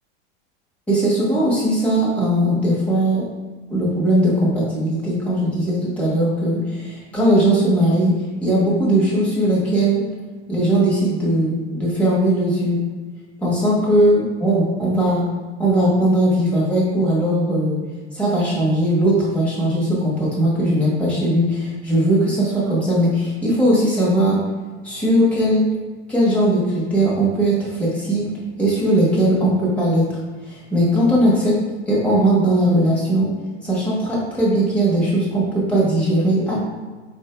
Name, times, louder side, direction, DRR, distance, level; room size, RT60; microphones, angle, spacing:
voice 1, 0.9-3.2 3.7-8.1 8.4-10.0 10.5-12.8 13.4-15.3 15.6-17.8 18.1-24.4 24.8-25.7 26.1-28.3 28.6-30.2 30.4-31.6 31.9-33.3 33.6-36.6, right 1 dB, 5° left, -7 dB, 1.3 m, -19 dB
5.1 x 2.7 x 3.3 m, 1.4 s
supercardioid pair, 135°, 36 cm